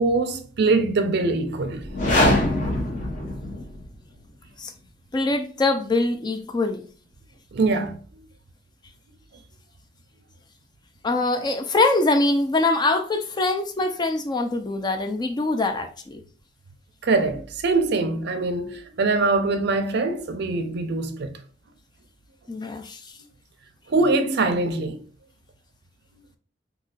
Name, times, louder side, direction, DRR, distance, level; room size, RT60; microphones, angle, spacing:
voice 1, 0.0-1.9 7.5-8.0 17.0-21.3 23.9-25.0, right 3 dB, 55° right, 0.5 m, -23 dB
sound 1, 1.8-3.9, left 1 dB, 40° left, 0.9 m, -22 dB
voice 2, 5.1-6.9 11.0-16.2 22.5-23.0, left 2 dB, 20° left, 0.3 m, -23 dB
4.1 x 2.8 x 2.3 m
head